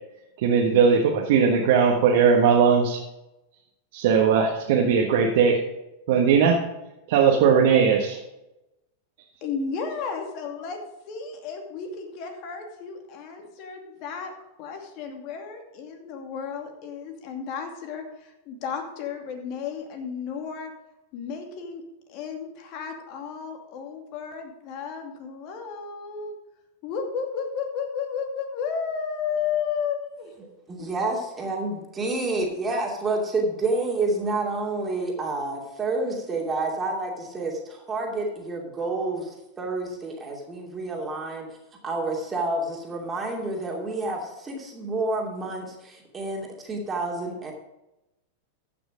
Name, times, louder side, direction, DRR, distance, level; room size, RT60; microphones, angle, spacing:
voice 1, 0.4-3.0 3.9-5.6 6.1-6.6 7.1-8.2, right 6 dB, 60° right, 0 dB, 1.4 m, -19 dB
voice 2, 9.4-10.8 11.1-14.3 14.6-20.7 21.1-21.8 22.1-26.3 26.8-30.3 30.8-30.9, left 6 dB, 50° left, 4 dB, 2.4 m, -33 dB
voice 3, 30.4-41.5 41.8-47.5, right 2 dB, 20° right, -1 dB, 2.7 m, -29 dB
14.5 x 6.2 x 5.1 m, 0.93 s
hypercardioid pair, 100°, 0 cm